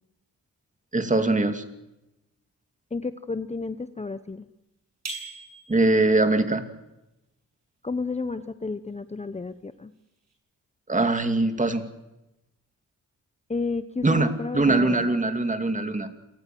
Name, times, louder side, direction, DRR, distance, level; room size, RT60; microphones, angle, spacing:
voice 1, 0.9-1.6 5.7-6.6 10.9-11.8 14.0-16.1, right 2 dB, 25° right, 8 dB, 2.5 m, -22 dB
voice 2, 2.9-4.5 7.8-9.9 13.5-15.1, left 4 dB, 20° left, 12 dB, 0.9 m, -31 dB
sound 1, 5.1-6.1, right 3 dB, 55° right, 8.0 m, -38 dB
28.5 x 19.0 x 7.8 m, 0.95 s
cardioid pair, 90°, 32 cm